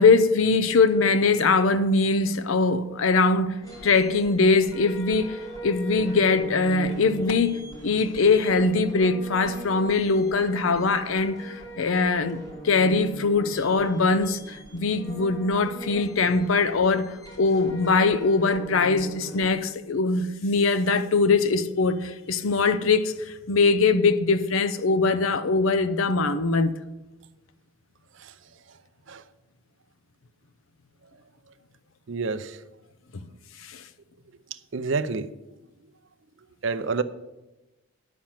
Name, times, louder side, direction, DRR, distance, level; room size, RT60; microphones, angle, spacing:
voice 1, 0.0-26.8 33.1-33.2 33.6-33.8, left 4 dB, 80° left, 0.6 m, -22 dB
sound 1, 3.6-19.5, equal, 20° left, 2.2 m, -41 dB
voice 2, 32.1-32.6 34.7-35.3 36.6-37.0, right 4 dB, 65° right, 0.6 m, -28 dB
10.0 x 5.9 x 7.3 m
head